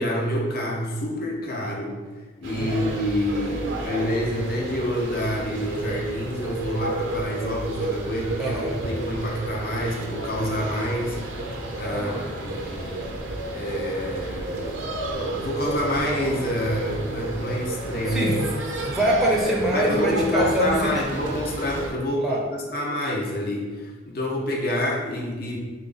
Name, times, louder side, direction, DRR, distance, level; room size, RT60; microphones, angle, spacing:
voice 1, 0.0-2.0 2.4-13.1 13.5-14.8 15.1-18.4 19.7-25.6, equal, 50° left, -1 dB, 0.6 m, -27 dB
sound 1, 2.4-21.9, right 2 dB, 80° right, 0.6 m, -31 dB
voice 2, 2.6-2.9 8.4-8.7 11.9-12.2 18.1-20.9 22.2-22.4, equal, ahead, -4 dB, 0.5 m, -25 dB
3.4 x 2.6 x 3.8 m, 1.3 s
head